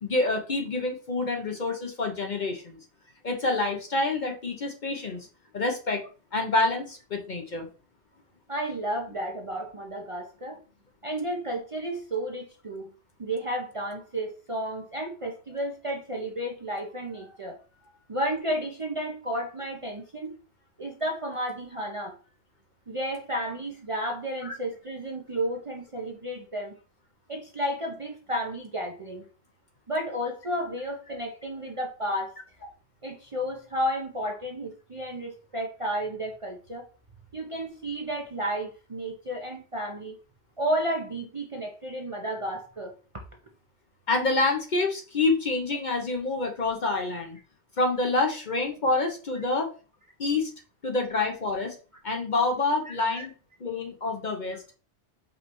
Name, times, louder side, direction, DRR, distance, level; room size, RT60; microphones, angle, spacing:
voice 1, 0.0-2.8 3.2-5.3 5.5-6.0 6.3-7.7 24.4-24.5 44.1-47.4 47.8-49.7 50.2-50.5 50.8-51.8 52.0-53.3 53.6-54.6, left 3 dB, 45° left, 3 dB, 0.8 m, -27 dB
voice 2, 8.5-10.6 11.0-12.9 13.2-17.6 18.1-20.3 20.8-22.1 22.9-26.7 27.3-29.3 29.9-32.3 33.0-36.9 37.3-40.2 40.6-43.2 52.9-53.3, equal, 35° right, 1 dB, 0.6 m, -32 dB
5.2 x 3.2 x 3.0 m, 0.36 s
omnidirectional pair, 1.2 m